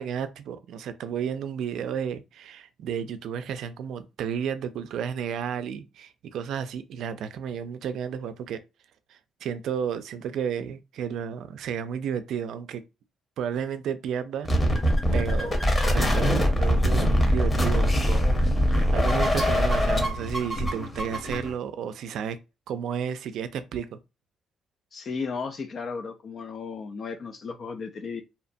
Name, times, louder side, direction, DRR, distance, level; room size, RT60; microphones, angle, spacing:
voice 1, 0.0-8.6 9.4-12.8 13.4-14.5 15.1-18.3 18.7-22.4 22.7-24.0, right 8 dB, 75° right, 0.3 m, -32 dB
sound 1, 14.5-21.5, equal, 20° left, 0.9 m, -23 dB
voice 2, 24.9-28.2, left 5 dB, 50° left, 0.4 m, -34 dB
2.7 x 2.1 x 2.6 m
cardioid pair, 90°, 0 cm